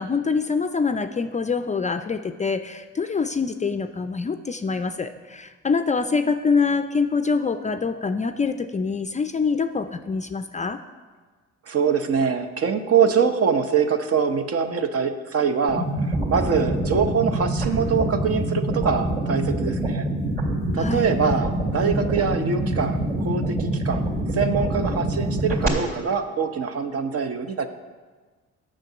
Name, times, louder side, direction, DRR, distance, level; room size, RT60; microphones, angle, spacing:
voice 1, 0.0-10.8 20.8-21.1, left 5 dB, 25° left, 9 dB, 0.4 m, -25 dB
voice 2, 11.7-15.9 16.3-20.1 20.7-27.7, right 6 dB, 50° right, 8 dB, 0.8 m, -24 dB
sound 1, 15.7-25.7, right 1 dB, 30° right, 2.5 m, -25 dB
7.6 x 5.9 x 7.8 m, 1.4 s
cardioid pair, 90°, 30 cm